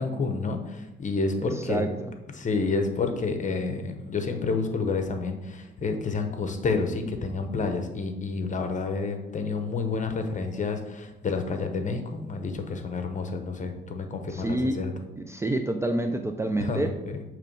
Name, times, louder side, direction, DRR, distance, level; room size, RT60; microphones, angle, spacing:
voice 1, 0.0-1.9 2.3-14.9 16.6-17.2, left 4 dB, 40° left, 6 dB, 0.9 m, -29 dB
voice 2, 1.5-2.1 14.3-14.8 15.2-16.9, right 1 dB, 15° right, 6 dB, 0.4 m, -28 dB
6.7 x 3.1 x 5.4 m, 1.1 s
cardioid pair, 90°, 20 cm